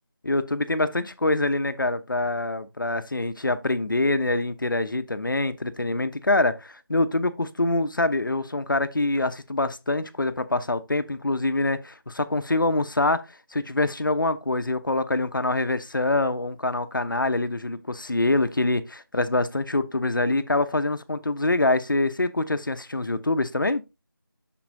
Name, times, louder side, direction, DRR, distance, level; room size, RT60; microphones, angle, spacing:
voice 1, 0.2-23.8, left 2 dB, 65° left, 0.8 m, -25 dB
7.1 x 6.1 x 2.6 m
figure-of-eight pair, 170°, 12 cm